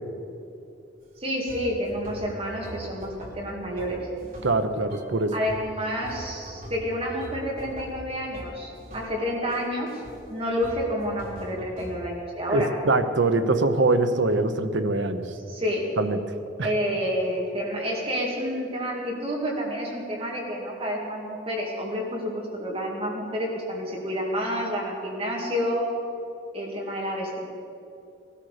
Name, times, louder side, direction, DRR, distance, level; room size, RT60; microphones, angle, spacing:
sound 1, 1.0-1.1 1.5-4.6 4.9-5.2 5.5-9.1 9.5-10.2 10.6-11.9, right 1 dB, 45° right, 3.4 m, -42 dB
voice 1, 1.2-4.0 5.3-9.9 10.3-12.7 15.5-15.9 16.6-25.9 26.5-27.4, equal, 30° right, -2 dB, 2.2 m, -29 dB
voice 2, 4.4-5.3 12.5-15.3 16.0-16.2 16.6-16.7, right 2 dB, 65° right, 8 dB, 0.9 m, -23 dB
18.5 x 13.0 x 5.0 m, 2.6 s
head